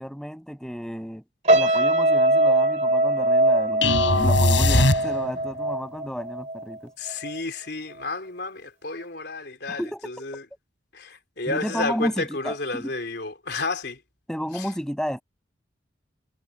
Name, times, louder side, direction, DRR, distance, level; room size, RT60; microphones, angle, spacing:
voice 1, 0.0-6.9 9.7-10.2 11.5-12.9 14.3-15.2, equal, 5° left, 7.1 m, -32 dB
sound 1, 1.5-6.8 7.1-7.4, right 1 dB, 40° right, 2.3 m, -22 dB
sound 2, 3.8-5.5, left 2 dB, 85° left, 5.6 m, -20 dB
voice 2, 7.0-10.4 10.9-14.0 14.5-14.7, left 3 dB, 60° left, 3.8 m, -31 dB
head